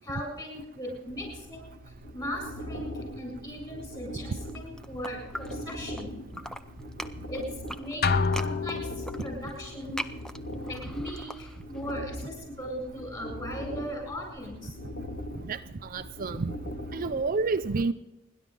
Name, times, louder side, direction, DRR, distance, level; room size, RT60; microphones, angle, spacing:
voice 1, 0.0-6.2 7.3-7.4 7.8-10.0 10.7-14.8, equal, 20° left, 0 dB, 7.7 m, -38 dB
sound 1, 1.0-17.4, equal, 85° left, 2.1 m, -41 dB
sound 2, 4.4-6.0 6.3-11.9, equal, 5° left, 0.5 m, -41 dB
sound 3, 8.0-9.5, left 4 dB, 50° left, 0.6 m, -27 dB
voice 2, 15.4-16.6 16.9-17.9, right 4 dB, 45° right, 9 dB, 0.5 m, -29 dB
30.0 x 11.0 x 3.9 m, 0.93 s
head